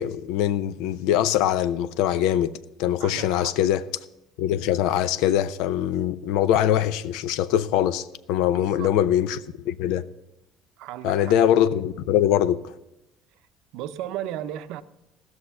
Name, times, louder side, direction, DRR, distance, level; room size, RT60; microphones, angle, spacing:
voice 1, 0.0-2.5 2.8-3.8 4.4-10.0 11.0-12.7, left 11 dB, 80° left, 0.6 m, -23 dB
voice 2, 3.0-3.5 8.5-8.9 10.8-11.3 13.7-14.8, right 12 dB, 70° right, 0.6 m, -35 dB
16.0 x 6.5 x 6.9 m
cardioid pair, 155°, 0 cm